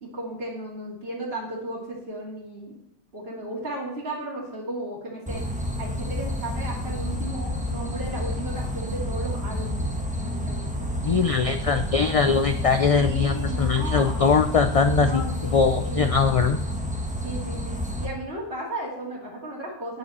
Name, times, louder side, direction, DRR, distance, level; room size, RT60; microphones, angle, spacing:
voice 1, 0.0-2.8 3.1-5.4 5.8-9.9 10.2-11.7 12.0-12.2 13.0-14.3 15.0-16.0 17.2-20.0, right 1 dB, 70° right, -6 dB, 2.7 m, -35 dB
sound 1, 5.3-18.1, left 1 dB, 5° right, 1.3 m, -29 dB
voice 2, 11.0-15.2 15.5-16.6, left 5 dB, 45° left, 9 dB, 0.5 m, -21 dB
9.7 x 8.7 x 4.3 m, 0.80 s
omnidirectional pair, 1.1 m